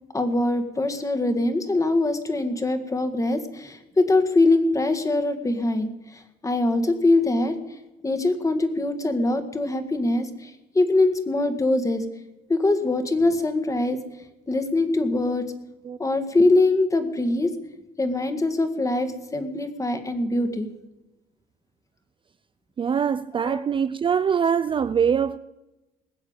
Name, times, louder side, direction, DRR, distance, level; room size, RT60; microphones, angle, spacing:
voice 1, 0.1-7.6 8.0-12.0 12.5-14.0 14.5-15.5 16.0-17.5 18.0-20.7 23.3-23.6, left 2 dB, 20° left, 1.8 m, -23 dB
voice 2, 22.8-25.4, right 7 dB, 30° right, 0.4 m, -23 dB
20.0 x 7.2 x 8.9 m
cardioid pair, 110°, 17 cm